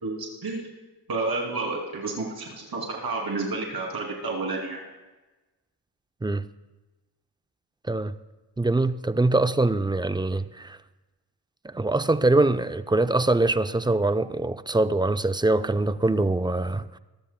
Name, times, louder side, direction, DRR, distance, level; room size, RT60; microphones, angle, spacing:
voice 1, 0.0-0.6 1.1-4.8, right 3 dB, 65° right, 2.8 m, -30 dB
voice 2, 8.6-10.8 11.7-17.0, right 2 dB, 10° right, 0.4 m, -23 dB
22.5 x 13.0 x 2.2 m
cardioid pair, 55°, 40 cm